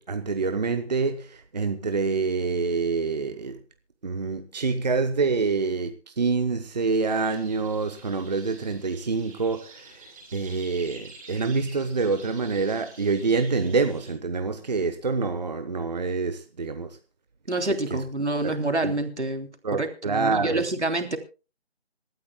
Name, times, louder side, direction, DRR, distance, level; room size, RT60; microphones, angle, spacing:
voice 1, 0.0-3.6 4.0-17.0 17.9-18.0 18.4-18.6 18.8-18.9 19.6-20.6, right 4 dB, 40° right, 1.0 m, -26 dB
sound 1, 7.0-14.1, right 3 dB, 5° right, 4.7 m, -48 dB
voice 2, 17.5-21.2, right 2 dB, 80° right, 3.2 m, -27 dB
26.5 x 13.0 x 2.2 m
figure-of-eight pair, 155°, 34 cm